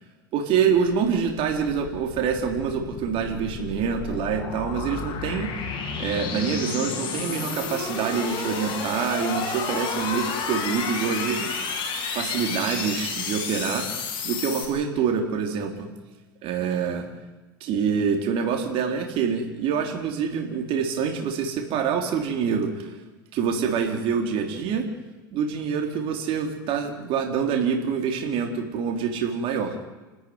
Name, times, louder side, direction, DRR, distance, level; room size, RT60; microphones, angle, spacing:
voice 1, 0.3-13.9 14.2-15.9 16.4-17.1 17.6-22.9 23.3-24.9 25.3-29.8, right 6 dB, 55° right, 3 dB, 4.0 m, -26 dB
sound 1, 1.0-14.7, left 5 dB, 45° left, 7.9 m, -31 dB
28.5 x 14.0 x 9.8 m, 1.2 s
supercardioid pair, 105°, 11 cm